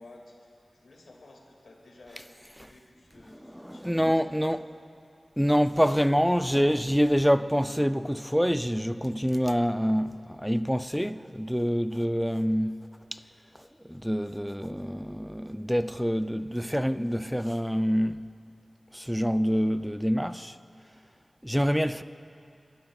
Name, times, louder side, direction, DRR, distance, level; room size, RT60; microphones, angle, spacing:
voice 1, 0.0-2.2 2.6-4.8, left 2 dB, 90° left, 2.2 m, -53 dB
voice 2, 3.5-4.6 5.4-13.2 13.9-18.3 18.9-20.6 21.4-22.0, equal, ahead, 0.4 m, -26 dB
29.5 x 12.5 x 2.4 m
wide cardioid pair, 50°, 0 cm